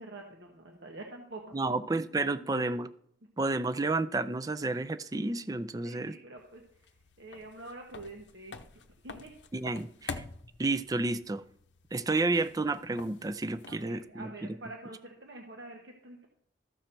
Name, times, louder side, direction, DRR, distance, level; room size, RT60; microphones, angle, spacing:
voice 1, 0.0-1.7 2.4-2.7 5.8-6.6 7.2-8.6 9.0-9.3 13.7-16.3, right 2 dB, 80° right, 1.2 m, -46 dB
voice 2, 1.5-2.9 3.4-6.2 9.5-10.2 10.6-11.4 11.9-14.6, right 3 dB, 20° right, 0.4 m, -31 dB
sound 1, 6.4-14.1, left 4 dB, 85° left, 0.7 m, -47 dB
13.5 x 6.5 x 4.4 m
head